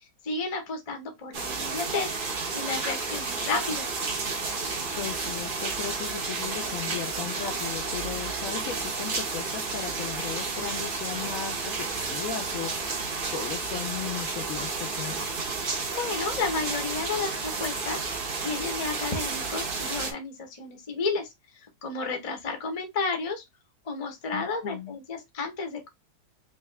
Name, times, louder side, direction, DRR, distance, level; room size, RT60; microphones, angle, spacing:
voice 1, 0.0-2.2 2.5-3.9 15.9-18.0 18.4-21.3 21.8-23.4 23.8-25.9, left 4 dB, 35° left, 0.5 m, -32 dB
sound 1, 1.3-20.1, right 4 dB, 50° right, 0.6 m, -31 dB
voice 2, 4.9-15.4 24.3-25.0, left 8 dB, 65° left, 0.9 m, -37 dB
3.4 x 2.7 x 3.2 m
omnidirectional pair, 1.8 m